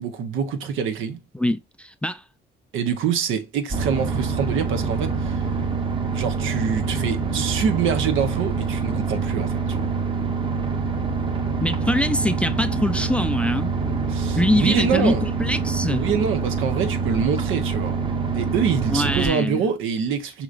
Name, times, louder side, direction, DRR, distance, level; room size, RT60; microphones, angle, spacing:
voice 1, 0.0-1.2 2.7-5.5 6.1-9.9 14.1-15.2 15.9-18.0 18.3-20.4, right 7 dB, 85° right, 0.8 m, -25 dB
voice 2, 1.3-2.2 11.6-13.7 14.4-16.1 18.9-19.6, left 1 dB, 5° left, 0.3 m, -23 dB
sound 1, 3.7-19.3, right 5 dB, 25° right, 0.8 m, -25 dB
5.1 x 3.0 x 2.4 m
cardioid pair, 90°, 20 cm